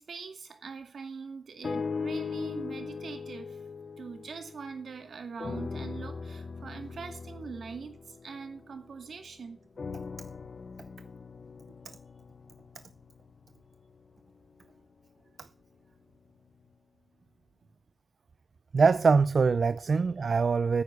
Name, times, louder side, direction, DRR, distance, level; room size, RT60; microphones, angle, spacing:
voice 1, 0.0-3.6 4.0-9.7, right 5 dB, 80° right, 2.3 m, -42 dB
sound 1, 1.6-5.0 5.4-9.1 9.8-14.0 14.6-14.7, left 5 dB, 55° left, 0.8 m, -39 dB
voice 2, 18.7-20.8, right 5 dB, 60° right, 0.5 m, -23 dB
9.4 x 9.4 x 8.3 m
wide cardioid pair, 100°, 0 cm